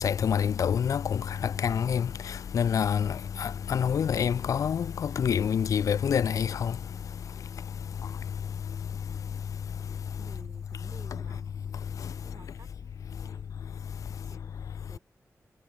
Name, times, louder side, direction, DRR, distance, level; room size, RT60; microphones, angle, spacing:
voice 1, 0.0-1.2 1.6-2.1 2.5-3.1 3.4-6.7, left 7 dB, 85° left, 0.4 m, -26 dB
voice 2, 10.2-11.8 12.2-13.5 14.1-15.0, right 4 dB, 45° right, 4.4 m, -53 dB
wide cardioid pair, 165°, 6 cm